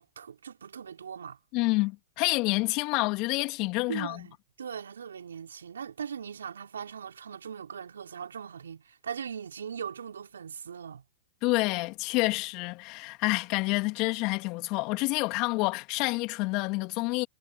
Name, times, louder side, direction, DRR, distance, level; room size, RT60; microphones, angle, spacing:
voice 1, 0.0-1.4 3.9-11.0, right 7 dB, 80° right, 3.8 m, -40 dB
voice 2, 1.5-4.2 11.4-17.3, left 25 dB, 45° left, 2.9 m, -28 dB
hypercardioid pair, 105°, 0 cm